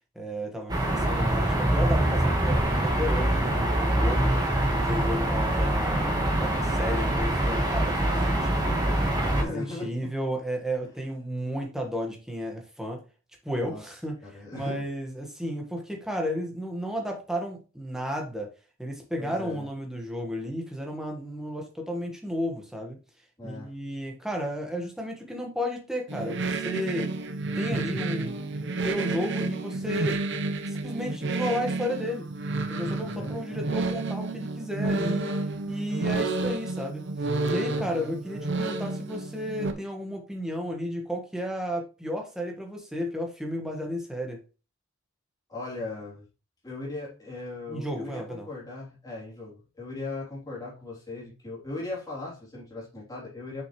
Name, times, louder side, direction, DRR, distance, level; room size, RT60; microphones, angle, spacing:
voice 1, 0.1-9.0 9.4-13.0 13.4-14.2 14.5-18.5 18.8-23.0 23.4-27.1 27.5-28.4 28.7-30.2 30.7-32.3 32.7-35.3 35.7-37.0 37.5-44.4 47.7-48.5, equal, 5° right, 1 dB, 1.4 m, -33 dB
sound 1, 0.7-9.4, right 1 dB, 20° right, 1.5 m, -24 dB
voice 2, 9.3-10.1 13.6-13.8 14.2-14.9 19.2-19.7 23.4-23.7 33.0-33.4 37.7-37.9 45.5-46.3 46.6-53.6, left 2 dB, 20° left, -5 dB, 3.1 m, -38 dB
sound 2, 26.1-39.7, right 2 dB, 60° right, 0.8 m, -30 dB
6.4 x 6.2 x 3.1 m, 0.32 s
head